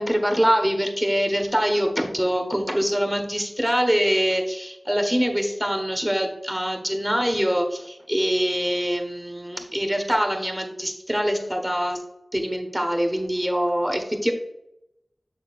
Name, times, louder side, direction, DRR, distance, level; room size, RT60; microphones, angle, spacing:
voice 1, 0.0-12.0 12.3-14.3, equal, 10° right, 4 dB, 1.4 m, -24 dB
6.7 x 6.5 x 2.5 m, 0.81 s
wide cardioid pair, 40°, 0 cm